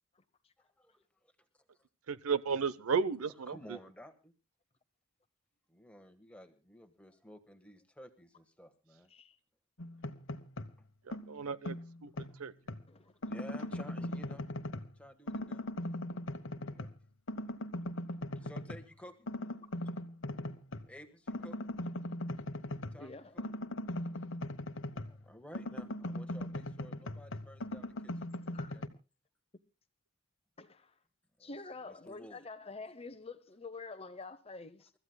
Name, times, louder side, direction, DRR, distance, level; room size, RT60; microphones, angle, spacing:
voice 1, 0.6-1.3 3.5-4.3 5.7-9.1 10.8-11.2 12.3-14.4 14.9-15.6 16.6-16.9 18.1-19.3 20.9-21.6 22.9-23.4 24.8-28.9 31.4-32.4, equal, 5° left, 1.4 m, -54 dB
voice 2, 2.1-3.8 11.1-11.8 12.0-12.1 12.4-12.5, right 5 dB, 80° right, 0.8 m, -33 dB
sound 1, 9.8-10.8 11.1-12.9 13.2-15.0 15.3-17.0 17.3-18.9 19.3-20.9 21.3-25.2 25.5-28.9, left 1 dB, 60° left, 1.1 m, -40 dB
voice 3, 23.0-23.4 28.5-28.8 30.6-30.9 31.4-34.9, left 3 dB, 25° left, 0.8 m, -47 dB
29.0 x 14.0 x 2.2 m
head